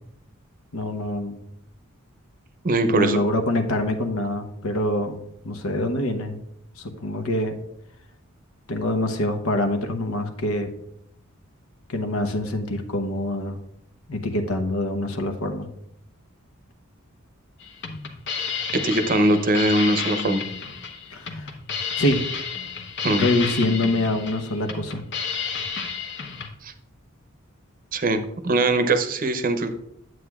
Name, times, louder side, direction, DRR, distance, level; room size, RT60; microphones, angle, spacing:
voice 1, 0.7-1.4 2.9-5.2 5.4-6.4 6.8-7.6 8.7-10.7 11.9-13.6 14.1-15.7 21.1-21.5 22.0-22.2 23.2-25.0, left 1 dB, 90° left, 6 dB, 0.9 m, -25 dB
voice 2, 2.6-3.2 18.7-20.4 23.0-23.3 26.6-26.7 27.9-29.7, right 2 dB, 40° right, 8 dB, 0.6 m, -21 dB
sound 1, 17.6-26.5, left 6 dB, 55° left, 0.9 m, -31 dB
9.5 x 7.6 x 2.4 m, 0.76 s
head